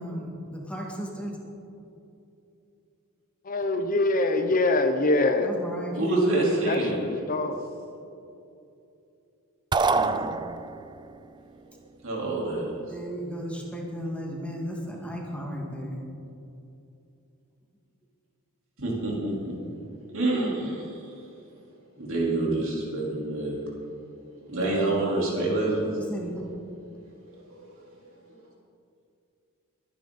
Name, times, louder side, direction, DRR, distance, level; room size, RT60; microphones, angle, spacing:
voice 1, 0.0-1.4 5.4-6.4 12.9-16.1 26.0-26.5, equal, 5° left, -2 dB, 2.1 m, -35 dB
voice 2, 3.4-5.5 6.3-7.6, left 2 dB, 40° left, 7 dB, 0.8 m, -24 dB
voice 3, 5.9-7.0 9.9-10.3 12.0-12.8 18.8-19.6 20.0-21.1 22.0-23.7 24.5-26.0 27.5-27.6 28.3-28.4, right 2 dB, 60° right, -4 dB, 4.1 m, -27 dB
sound 1, 9.7-11.0, right 4 dB, 20° right, 0.4 m, -25 dB
23.0 x 10.0 x 4.2 m, 2.7 s
head